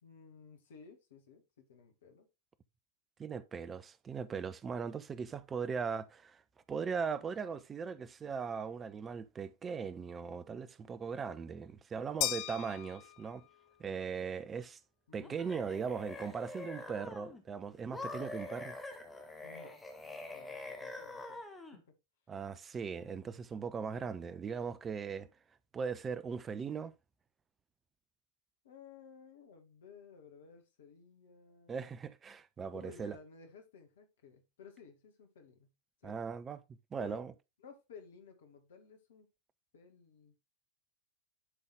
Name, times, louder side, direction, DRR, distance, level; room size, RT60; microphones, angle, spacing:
voice 1, 0.0-2.3 15.1-15.6 19.4-19.8 20.3-21.4 21.7-22.0 28.6-32.0 32.7-35.7 36.0-36.2 37.0-37.2 37.6-39.3 39.7-40.4, left 5 dB, 60° left, 1.9 m, -56 dB
voice 2, 3.2-6.4 6.7-13.4 13.8-14.8 15.1-18.8 22.3-25.3 25.7-26.9 31.7-33.2 36.0-36.6 36.9-37.3, right 6 dB, 20° right, 0.6 m, -39 dB
sound 1, 12.2-13.7, left 16 dB, 45° left, 0.5 m, -37 dB
sound 2, 15.2-17.4 17.9-21.8, left 2 dB, 10° left, 1.6 m, -45 dB
11.0 x 4.0 x 3.5 m
figure-of-eight pair, 90°, 0 cm